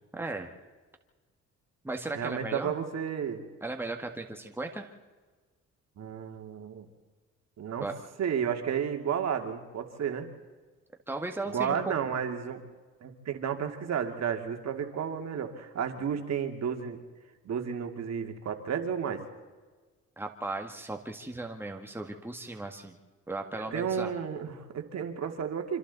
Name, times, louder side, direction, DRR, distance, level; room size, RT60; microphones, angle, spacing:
voice 1, 0.1-0.5 1.8-2.7 3.6-4.9 7.8-7.9 11.1-11.8 20.2-22.9 23.3-24.1, right 2 dB, 5° right, 3 dB, 1.9 m, -36 dB
voice 2, 2.2-3.4 6.0-6.9 7.6-7.9 8.2-10.3 11.5-12.6 13.0-17.0 17.4-19.3 23.5-25.8, right 7 dB, 60° right, 5 dB, 2.3 m, -32 dB
26.5 x 26.0 x 4.1 m, 1.4 s
cardioid pair, 90°, 30 cm